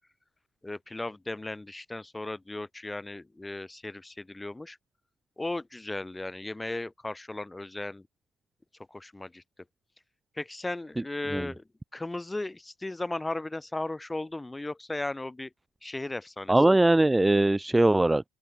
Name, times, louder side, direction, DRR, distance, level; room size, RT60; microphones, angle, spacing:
voice 1, 0.6-4.8 5.4-8.0 8.9-9.4 10.4-11.6 11.9-15.5 15.8-16.5, left 2 dB, 15° left, 3.4 m, -36 dB
voice 2, 16.5-18.2, right 2 dB, 10° right, 1.0 m, -21 dB
open air
hypercardioid pair, 65°, 0 cm